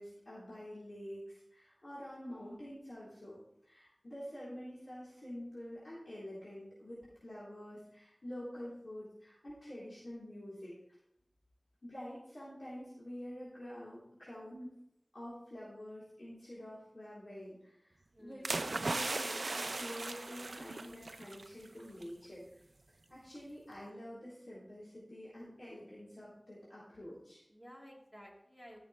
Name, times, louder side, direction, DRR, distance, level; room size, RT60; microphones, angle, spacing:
voice 1, 0.0-10.7 11.8-14.8 15.1-22.6 23.1-27.4, equal, 65° left, -10 dB, 3.7 m, -47 dB
voice 2, 2.2-2.6 18.1-18.5 27.5-28.8, equal, 15° left, -2 dB, 2.7 m, -55 dB
sound 1, 18.4-21.5 21.8-22.0, right 2 dB, 80° right, 0.4 m, -37 dB
14.5 x 7.0 x 3.2 m, 0.78 s
wide cardioid pair, 45°, 0 cm